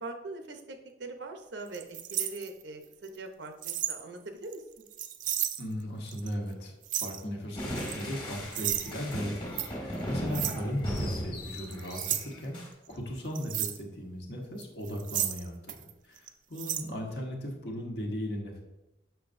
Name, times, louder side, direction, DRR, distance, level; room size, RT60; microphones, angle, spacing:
voice 1, 0.0-4.6, right 2 dB, 70° right, 5 dB, 0.7 m, -42 dB
sound 1, 1.7-2.9 3.6-4.0 4.4-5.6 6.1-6.3 6.8-7.2 7.8-8.0 8.5-8.9 9.6-9.7 10.3-10.6 11.0-11.1 11.6-12.2 13.4-13.8 14.6-15.9 16.2-16.3 16.6-16.8, right 11 dB, 45° right, 0.3 m, -33 dB
voice 2, 5.6-6.7 7.0-12.6 12.9-18.6, equal, 65° left, 0 dB, 1.2 m, -37 dB
sound 2, 7.5-12.7, equal, 25° left, 1.5 m, -37 dB
6.7 x 6.2 x 2.6 m, 0.99 s
head